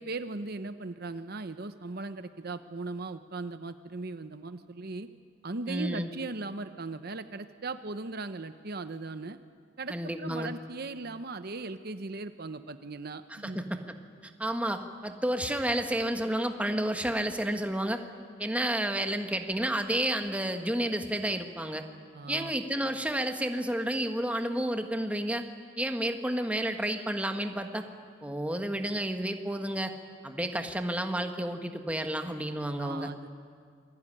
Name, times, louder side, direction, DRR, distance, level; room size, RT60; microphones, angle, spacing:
voice 1, 0.0-5.1 5.4-9.4 9.8-13.6 22.1-22.5 32.7-33.3, right 3 dB, 55° right, 10 dB, 0.9 m, -38 dB
voice 2, 5.7-6.1 9.9-10.5 13.3-13.8 14.2-18.0 18.4-21.8 22.3-25.5 25.8-27.8 28.2-29.9 30.2-33.1, right 1 dB, 5° right, 5 dB, 1.5 m, -31 dB
27.5 x 21.5 x 10.0 m, 2.2 s
head